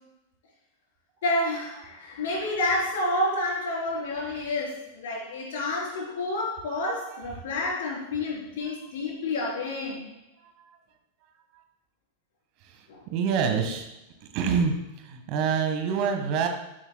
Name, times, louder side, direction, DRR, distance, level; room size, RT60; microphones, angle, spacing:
voice 1, 1.2-10.1 12.9-13.0, left 2 dB, 60° left, -2 dB, 4.1 m, -29 dB
voice 2, 4.2-4.5 7.1-7.3 7.6-7.8 8.6-8.7 10.4-10.8 12.6-13.9 14.2-16.5, right 6 dB, 45° right, 5 dB, 1.6 m, -28 dB
13.0 x 11.0 x 2.3 m, 0.92 s
figure-of-eight pair, 90°, 0 cm